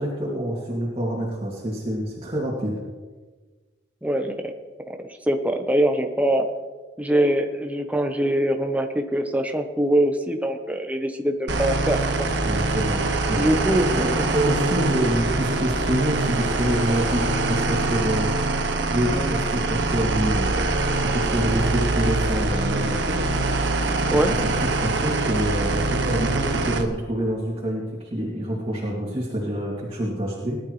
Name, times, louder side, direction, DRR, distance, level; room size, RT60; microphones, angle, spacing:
voice 1, 0.0-2.8 12.4-13.5 14.0-18.3 18.9-20.6 21.0-23.2 24.1-27.8 28.1-30.6, right 1 dB, 30° right, -7 dB, 2.5 m, -26 dB
voice 2, 4.0-4.5 4.9-5.0 5.3-6.5 7.0-12.3 13.3-14.0 24.1-24.3, right 1 dB, 10° right, 5 dB, 1.0 m, -23 dB
sound 1, 11.5-26.8, right 2 dB, 70° right, 1.1 m, -24 dB
19.5 x 11.5 x 3.3 m, 1.4 s
head